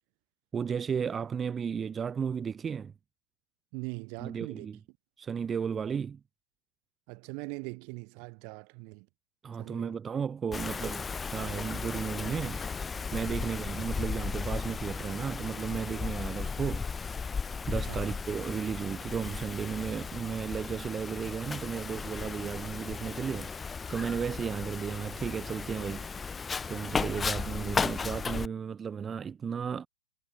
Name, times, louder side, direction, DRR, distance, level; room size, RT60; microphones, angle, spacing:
voice 1, 0.5-2.9 4.2-4.8 5.2-6.2 9.4-12.6 13.1-17.1 17.7-23.6 23.9-26.2 26.7-29.9, right 7 dB, 20° right, 0.9 m, -34 dB
voice 2, 3.7-4.7 7.1-9.1 9.6-10.0 13.3-13.5 17.9-18.2, right 40 dB or more, 40° right, 1.2 m, -41 dB
Wind, 10.5-28.5, left 5 dB, 15° left, 0.7 m, -35 dB
figure-of-eight pair, 110°, 0 cm